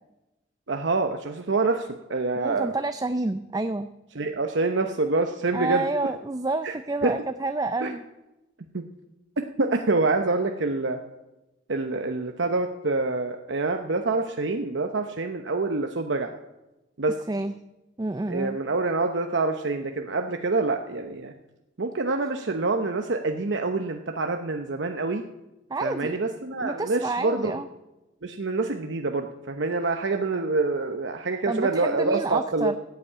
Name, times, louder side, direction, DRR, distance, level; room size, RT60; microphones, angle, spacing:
voice 1, 0.7-2.7 4.1-5.9 6.6-6.7 7.0-7.1 7.8-7.9 8.7-8.8 9.6-11.0 11.7-16.3 17.0-17.2 18.3-21.3 21.8-25.2 25.8-27.6 28.2-32.7, right 3 dB, 75° right, 5 dB, 0.9 m, -26 dB
voice 2, 2.4-3.9 5.5-8.0 17.3-17.5 18.0-18.6 25.7-26.2 26.6-27.7 31.5-32.8, right 2 dB, 20° right, 10 dB, 0.4 m, -29 dB
15.5 x 8.3 x 8.7 m, 1.0 s
head